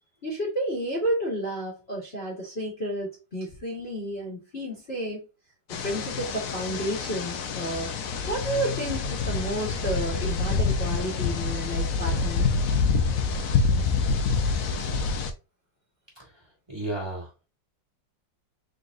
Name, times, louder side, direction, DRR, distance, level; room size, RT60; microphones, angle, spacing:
voice 1, 0.2-5.3 5.8-7.9 8.3-12.4, right 1 dB, 35° left, 1.5 m, -31 dB
sound 1, 5.7-15.3, left 4 dB, 65° left, 0.9 m, -27 dB
voice 2, 16.2-17.3, right 1 dB, 15° right, 2.0 m, -35 dB
4.0 x 3.9 x 2.5 m
omnidirectional pair, 2.0 m